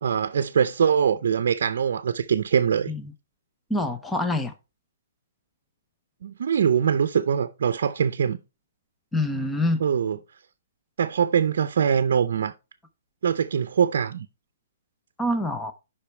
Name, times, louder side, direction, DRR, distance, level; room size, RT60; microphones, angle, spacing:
voice 1, 0.0-2.9 6.2-8.4 9.8-10.2 11.0-12.5 13.2-14.3, right 7 dB, 50° right, 0.6 m, -23 dB
voice 2, 3.7-4.5 9.1-9.8 15.2-15.7, left 1 dB, 5° left, 0.5 m, -25 dB
8.4 x 5.5 x 4.4 m
hypercardioid pair, 175°, 0 cm